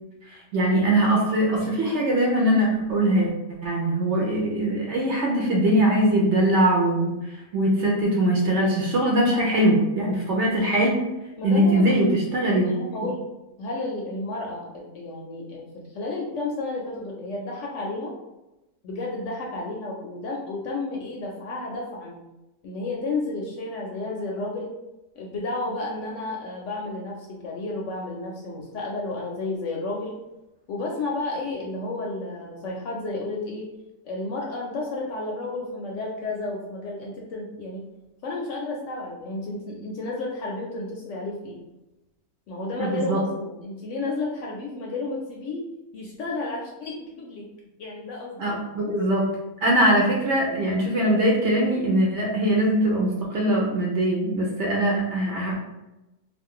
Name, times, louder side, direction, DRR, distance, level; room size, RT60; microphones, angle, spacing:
voice 1, 0.3-3.3 3.6-11.0 11.4-12.7 42.8-43.2 48.4-49.3 49.6-55.5, right 1 dB, 60° right, -3 dB, 0.8 m, -22 dB
voice 2, 11.4-13.3 13.6-18.1 18.8-22.2 22.6-24.7 25.2-30.1 30.7-33.7 34.0-37.8 38.2-41.6 42.5-45.6 45.9-47.5 47.8-48.5 48.8-48.9, left 2 dB, 65° left, -2 dB, 0.8 m, -32 dB
2.4 x 2.4 x 3.6 m, 0.99 s
omnidirectional pair, 1.6 m